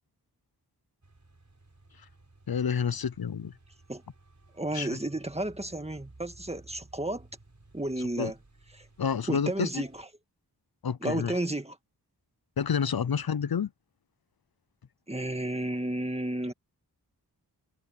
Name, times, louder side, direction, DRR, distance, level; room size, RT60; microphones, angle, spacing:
sound 1, 1.0-10.1, right 2 dB, 45° right, 5.9 m, -57 dB
voice 1, 2.5-3.5 4.7-4.9 8.2-8.3 9.0-9.8 10.8-11.3 12.6-13.7, left 7 dB, 65° left, 0.7 m, -29 dB
voice 2, 4.5-7.3 7.7-8.4 8.7-8.9 9.3-10.1 11.0-11.8 15.1-16.5, right 1 dB, 15° right, 1.9 m, -32 dB
wide cardioid pair, 65°, 40 cm